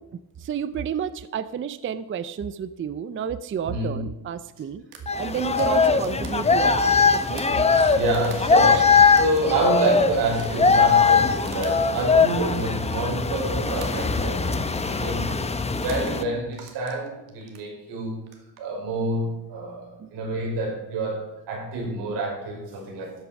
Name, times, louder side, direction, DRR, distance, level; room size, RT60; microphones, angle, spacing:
voice 1, 0.4-4.8 5.2-8.0 8.7-8.8 15.3-15.4 20.0-20.1, right 8 dB, 30° right, 14 dB, 0.5 m, -31 dB
voice 2, 3.7-4.0 5.7-6.0 7.9-14.6 14.8-15.3 15.8-18.1 18.6-23.1, right 2 dB, 85° right, -1 dB, 5.4 m, -28 dB
sound 1, 4.9-8.8 9.1-13.4 13.8-14.4 14.7-15.0 15.7-16.2 16.5-17.7 18.2-18.6, right 6 dB, 70° right, 2.3 m, -45 dB
sound 2, 5.1-16.2, left 5 dB, 15° left, 0.8 m, -21 dB
14.0 x 8.2 x 6.0 m, 0.92 s
cardioid pair, 110°, 40 cm